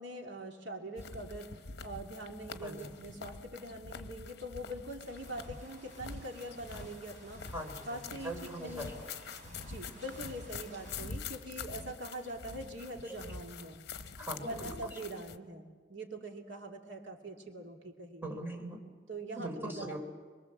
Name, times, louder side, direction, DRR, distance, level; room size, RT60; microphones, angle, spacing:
voice 1, 0.0-7.4 7.8-8.9 9.6-13.8 14.4-18.5 19.1-20.0, right 1 dB, 80° right, 2 dB, 2.7 m, -43 dB
sound 1, 1.0-15.4, left 5 dB, 60° left, 0.9 m, -46 dB
voice 2, 2.6-3.0 7.5-9.5 13.0-13.2 14.2-15.0 18.2-18.8 19.4-20.0, right 1 dB, 15° right, 1 dB, 3.7 m, -42 dB
sound 2, 5.0-11.1, right 1 dB, 45° right, 5.2 m, -56 dB
25.0 x 23.0 x 7.4 m, 1.5 s
head